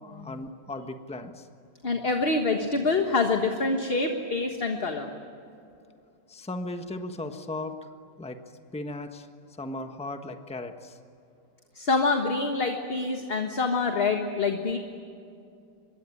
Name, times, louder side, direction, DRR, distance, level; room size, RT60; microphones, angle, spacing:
voice 1, 0.0-1.5 6.3-7.8 8.2-8.4 8.7-9.3 9.6-11.0, left 2 dB, 5° left, 6 dB, 1.1 m, -36 dB
voice 2, 1.8-5.1 11.7-14.8, left 3 dB, 35° left, 4 dB, 1.6 m, -26 dB
25.0 x 22.0 x 9.8 m, 2.5 s
omnidirectional pair, 1.9 m